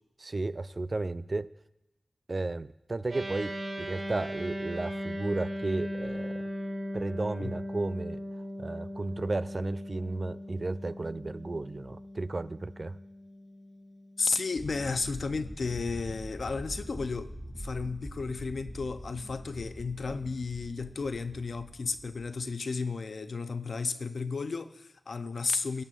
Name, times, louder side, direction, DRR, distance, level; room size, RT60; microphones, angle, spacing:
voice 1, 0.2-1.5 2.3-6.5 6.9-8.2 8.6-13.0, right 2 dB, 40° right, 0.3 m, -34 dB
sound 1, 3.1-14.6, equal, 85° right, 3.5 m, -38 dB
voice 2, 14.2-25.8, left 4 dB, 70° left, 0.5 m, -33 dB
sound 2, 14.6-22.4, equal, 5° right, 2.1 m, -44 dB
18.0 x 8.9 x 2.5 m
wide cardioid pair, 80°, 0 cm